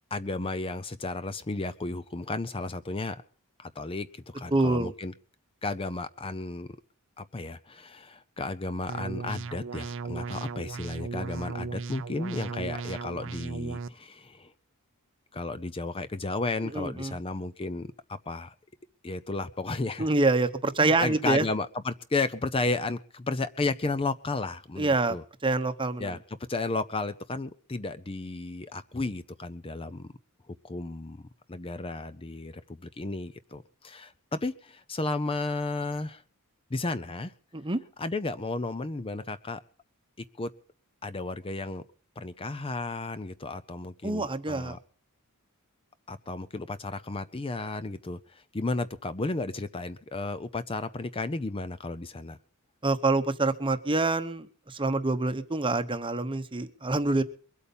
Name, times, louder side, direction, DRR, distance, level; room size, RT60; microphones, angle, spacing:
voice 1, 0.1-3.2 3.6-5.1 5.6-6.7 7.2-14.5 15.3-18.5 19.0-20.1 20.8-25.2 26.0-26.2 26.5-30.1 30.5-36.2 36.7-37.3 38.0-39.6 40.4-40.5 41.0-41.8 42.2-44.8 46.1-52.4, left 3 dB, 25° left, 13 dB, 0.6 m, -33 dB
voice 2, 4.5-4.9 16.7-17.2 20.0-21.5 24.8-25.2 25.4-26.2 37.5-37.8 44.0-44.8 52.8-57.2, right 3 dB, 25° right, 10 dB, 0.9 m, -26 dB
sound 1, 8.9-13.9, right 4 dB, 60° right, 0.6 m, -36 dB
22.5 x 8.5 x 5.4 m, 0.41 s
head